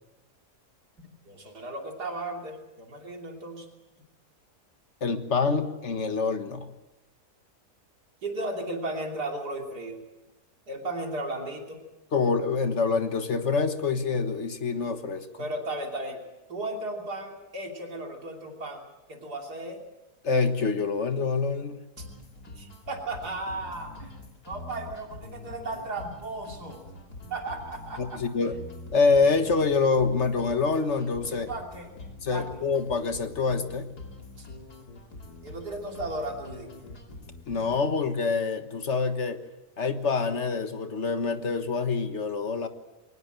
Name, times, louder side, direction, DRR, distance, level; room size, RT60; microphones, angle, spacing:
voice 1, 1.3-3.7 8.2-10.0 10.7-11.8 15.4-16.2 16.5-18.8 19.1-19.8 22.0-22.1 22.6-24.1 24.5-26.8 27.3-28.2 31.3-31.9 32.3-32.5 34.4-34.5 35.4-36.7, right 2 dB, 90° right, 1 dB, 3.5 m, -35 dB
voice 2, 5.0-6.7 12.1-15.4 20.2-21.8 28.0-28.6 28.9-31.5 32.2-33.9 37.5-39.4 39.8-42.7, left 4 dB, 50° left, 8 dB, 1.7 m, -26 dB
sound 1, 22.0-38.0, left 2 dB, 80° left, 3.2 m, -45 dB
22.5 x 19.5 x 7.8 m, 1.0 s
omnidirectional pair, 1.7 m